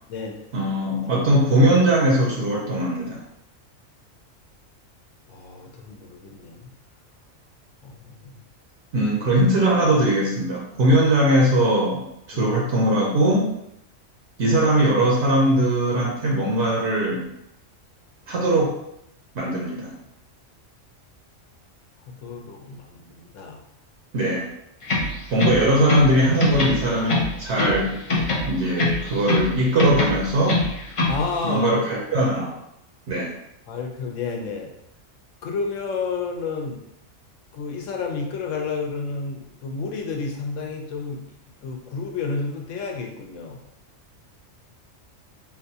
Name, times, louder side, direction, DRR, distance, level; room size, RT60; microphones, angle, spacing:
voice 1, 0.5-3.2 8.9-13.5 14.4-17.3 18.3-18.8 19.3-19.9 24.1-24.5 25.3-28.0 28.5-30.7 31.4-32.5 33.1-33.4, right 1 dB, 65° right, -3 dB, 0.9 m, -20 dB
voice 2, 5.3-6.7 7.8-8.4 12.3-12.6 22.2-23.6 31.1-31.8 33.7-34.7 35.4-36.8 37.5-41.2 41.6-43.6, left 4 dB, 75° left, 2 dB, 1.0 m, -30 dB
sound 1, 24.8-26.1 26.4-27.8 28.1-29.5 29.8-31.2, left 2 dB, 55° left, 0.3 m, -23 dB
3.9 x 2.3 x 2.7 m, 0.79 s
omnidirectional pair, 1.4 m